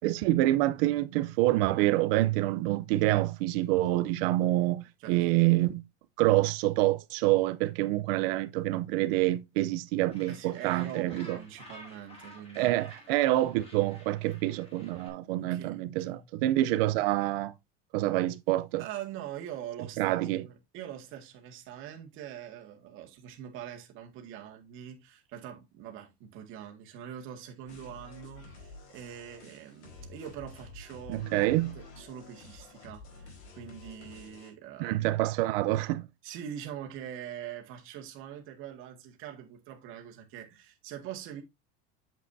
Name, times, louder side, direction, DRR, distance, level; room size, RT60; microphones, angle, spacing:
voice 1, 0.0-5.8 6.2-11.4 12.6-17.5 17.9-18.8 20.0-20.4 31.1-31.7 34.8-36.1, right 16 dB, 60° right, 0.7 m, -27 dB
voice 2, 5.0-5.6 10.3-12.7 15.4-16.3 18.8-35.0 36.2-41.4, right 10 dB, 40° right, 1.9 m, -43 dB
Gull seagull, 10.1-15.1, left 1 dB, 20° left, 2.8 m, -52 dB
sound 1, 27.7-34.5, left 3 dB, 80° left, 4.3 m, -50 dB
8.5 x 7.5 x 2.7 m
cardioid pair, 175°, 33 cm